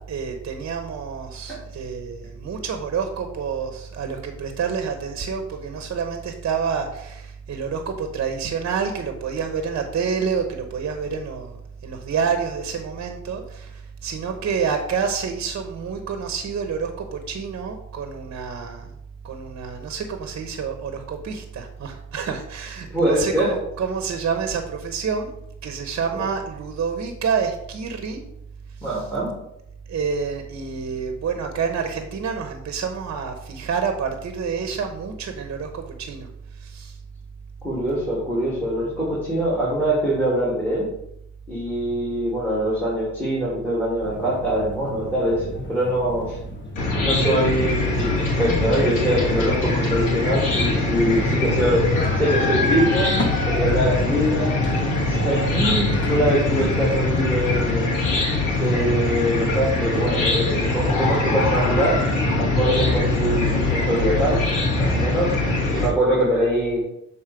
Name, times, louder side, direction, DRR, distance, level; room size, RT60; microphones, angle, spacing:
voice 1, 0.1-18.9 19.2-25.3 25.6-28.2 29.9-36.3 36.6-37.0, right 6 dB, 50° right, 5 dB, 1.0 m, -28 dB
voice 2, 22.9-23.5 26.1-26.2 28.8-29.3 37.6-40.9 41.5-46.4 47.0-53.1 53.4-54.6 55.0-58.0 58.4-62.0 62.4-64.4 64.8-65.3 65.7-66.8, right 1 dB, 5° left, -6 dB, 2.7 m, -23 dB
sound 1, 44.0-56.2, equal, 40° left, 1.4 m, -35 dB
Chicken rooster / Cricket, 46.8-65.9, left 2 dB, 90° left, 2.3 m, -22 dB
7.4 x 4.2 x 5.1 m, 0.80 s
cardioid pair, 90°, 30 cm